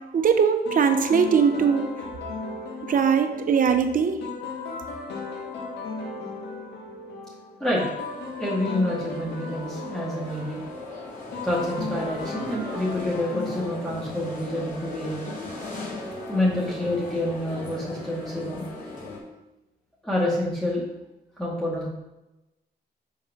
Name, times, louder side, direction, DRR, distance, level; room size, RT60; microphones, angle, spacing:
voice 1, 0.1-1.8 2.9-4.2, right 6 dB, 50° right, 7 dB, 0.9 m, -20 dB
sound 1, 0.7-14.9, left 3 dB, 85° left, 1.4 m, -36 dB
sound 2, 8.1-19.2, left 2 dB, 50° left, 2.9 m, -39 dB
voice 2, 8.4-10.6 11.4-15.4 16.3-18.6 20.0-20.9 21.4-21.9, left 1 dB, 5° left, -7 dB, 2.1 m, -27 dB
5.4 x 5.3 x 6.0 m, 0.99 s
cardioid pair, 75°, 18 cm